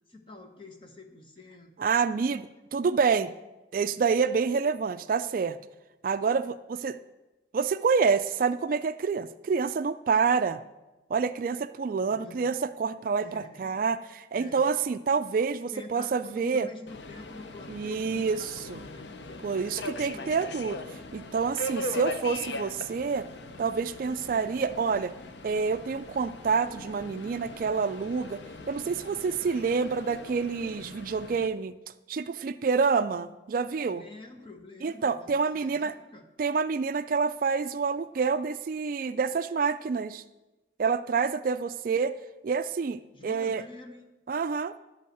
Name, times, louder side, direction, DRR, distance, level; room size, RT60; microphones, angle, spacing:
voice 1, 0.1-1.9 12.1-12.5 13.2-13.8 14.3-14.7 15.7-20.4 21.8-22.0 33.9-36.2 43.1-44.1, left 2 dB, 25° left, 4 dB, 1.2 m, -47 dB
voice 2, 1.8-3.3 3.7-5.6 6.0-7.0 7.5-10.6 11.1-16.7 17.7-18.8 19.4-20.8 21.1-23.3 23.6-25.1 25.4-31.7 32.1-34.0 34.8-35.9 36.4-40.2 40.8-42.2 42.4-43.6 44.3-44.8, right 5 dB, 45° right, 12 dB, 0.3 m, -28 dB
Subway metro underground, 16.9-31.5, left 1 dB, 65° left, 0.7 m, -40 dB
11.5 x 5.6 x 7.7 m, 1.1 s
head